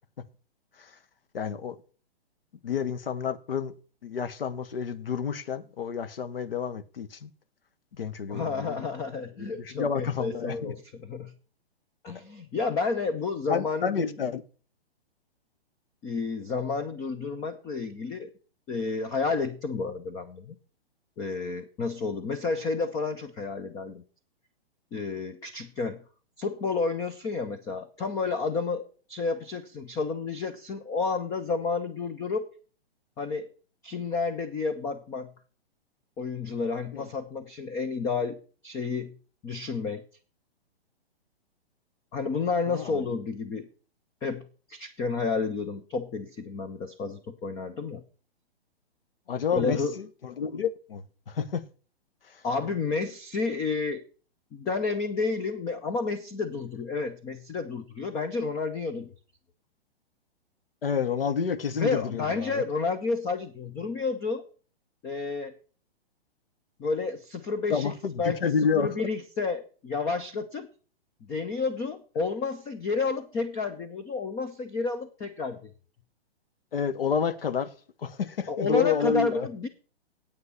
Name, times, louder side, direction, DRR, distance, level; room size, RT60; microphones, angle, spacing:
voice 1, 1.3-1.8 2.6-3.7 4.0-7.3 8.0-8.8 9.4-10.7 13.5-14.4 36.9-37.0 42.7-43.0 49.3-51.6 60.8-62.6 67.7-69.1 76.7-77.7 78.0-79.5, left 6 dB, 60° left, 1.1 m, -29 dB
voice 2, 8.3-11.3 12.0-14.1 16.0-18.3 18.7-20.6 21.2-24.0 24.9-26.0 26.4-32.4 33.2-33.5 33.8-35.3 36.2-38.4 38.6-39.2 39.4-40.0 42.1-43.7 44.2-44.4 44.7-48.0 49.5-50.0 52.4-54.0 54.5-59.1 61.8-64.4 65.0-65.5 66.8-67.9 68.2-70.7 71.2-75.7 78.5-79.7, left 4 dB, 10° left, 0.4 m, -30 dB
9.5 x 8.5 x 5.7 m
figure-of-eight pair, 120°, 32 cm